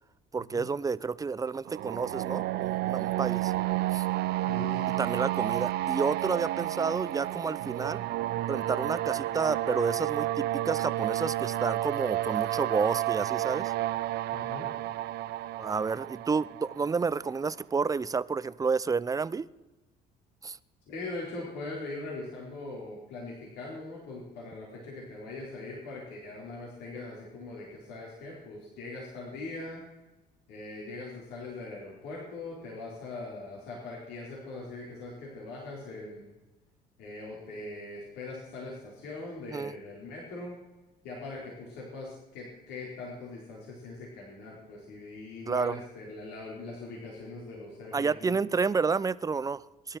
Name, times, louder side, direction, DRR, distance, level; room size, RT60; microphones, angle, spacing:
voice 1, 0.3-3.5 3.9-4.1 5.0-8.0 8.5-13.7 15.6-19.5 20.4-20.6 39.5-39.7 45.5-45.8 47.9-50.0, right 5 dB, 20° right, 17 dB, 0.6 m, -30 dB
sound 1, 1.7-17.5, right 15 dB, 75° right, 0.6 m, -31 dB
voice 2, 4.5-4.9 14.3-14.7 20.9-29.8 30.5-36.4 37.0-40.5 41.0-48.3, left 2 dB, 85° left, -4 dB, 4.6 m, -41 dB
23.0 x 12.0 x 4.5 m, 1.1 s
cardioid pair, 110°, 17 cm